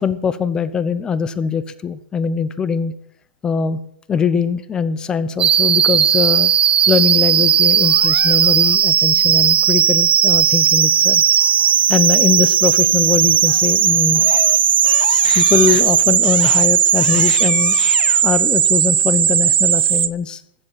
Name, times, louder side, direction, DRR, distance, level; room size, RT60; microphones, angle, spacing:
voice 1, 0.0-2.9 3.4-3.8 4.1-6.5 6.9-14.2 15.3-17.8 18.2-20.4, left 6 dB, 15° left, 15 dB, 0.7 m, -21 dB
sound 1, 5.4-20.1, right 9 dB, 85° right, 0.8 m, -15 dB
Crying sobbing, 7.8-8.8 13.4-13.8 14.1-18.2, left 12 dB, 60° left, 0.8 m, -30 dB
14.5 x 7.4 x 8.9 m, 0.69 s
hypercardioid pair, 155°, 6 cm